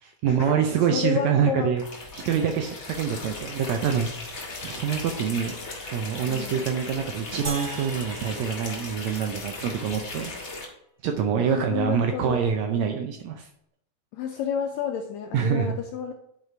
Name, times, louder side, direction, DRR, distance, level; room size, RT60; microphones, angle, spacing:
voice 1, 0.0-1.8 2.1-4.1 4.3-5.5 5.9-10.6 11.0-13.5 15.3-15.8, right 7 dB, 75° right, 4 dB, 1.7 m, -26 dB
voice 2, 0.9-1.7 3.1-3.3 6.3-6.7 11.4-12.4 14.1-16.1, left 7 dB, 80° left, 4 dB, 1.6 m, -30 dB
sound 1, 1.8-10.6, left 3 dB, 65° left, 0.8 m, -37 dB
sound 2, 7.4-9.9, right 4 dB, 55° right, 0.7 m, -39 dB
9.6 x 4.1 x 4.5 m, 0.73 s
omnidirectional pair, 3.7 m